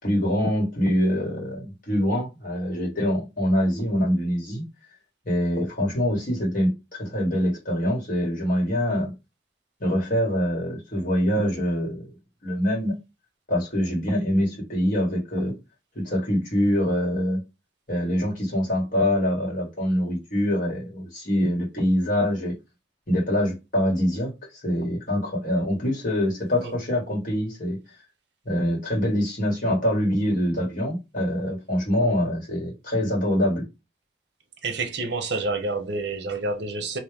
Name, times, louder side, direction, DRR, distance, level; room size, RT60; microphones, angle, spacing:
voice 1, 0.0-4.6 5.3-9.1 9.8-12.1 12.4-12.9 13.5-15.5 16.0-17.4 17.9-22.5 23.1-24.3 24.6-27.8 28.5-33.7, equal, 45° left, 1.9 m, -24 dB
voice 2, 34.6-37.0, right 3 dB, 65° right, 0.7 m, -28 dB
3.6 x 2.9 x 3.4 m
head